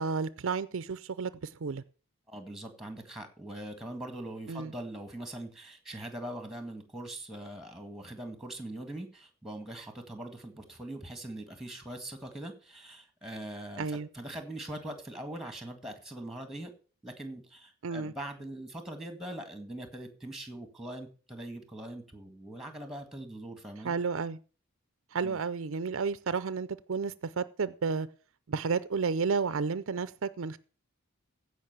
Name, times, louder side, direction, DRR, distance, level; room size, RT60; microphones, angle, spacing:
voice 1, 0.0-1.8 4.5-4.7 13.8-14.1 17.8-18.1 23.8-24.4 25.1-28.1 28.5-30.6, right 5 dB, 60° right, 0.5 m, -32 dB
voice 2, 2.3-16.7 17.0-23.9 25.2-25.4, right 1 dB, ahead, 1.8 m, -42 dB
15.5 x 5.3 x 6.8 m
head